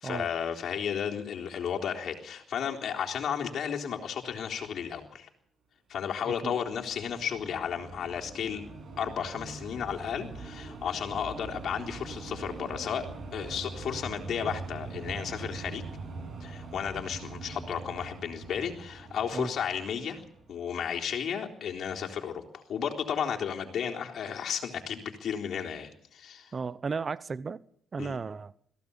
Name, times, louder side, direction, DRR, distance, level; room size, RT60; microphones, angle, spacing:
voice 1, 0.0-5.3 5.9-8.6 9.0-13.1 13.3-15.8 16.4-20.2 20.5-26.5 28.0-28.2, left 8 dB, 65° left, 3.8 m, -33 dB
voice 2, 6.3-6.6 19.3-19.5 26.5-27.6 27.9-28.5, right 5 dB, 35° right, 0.9 m, -34 dB
sound 1, 6.5-20.9, right 3 dB, 55° right, 7.4 m, -43 dB
22.5 x 16.0 x 7.2 m
cardioid pair, 90°, 0 cm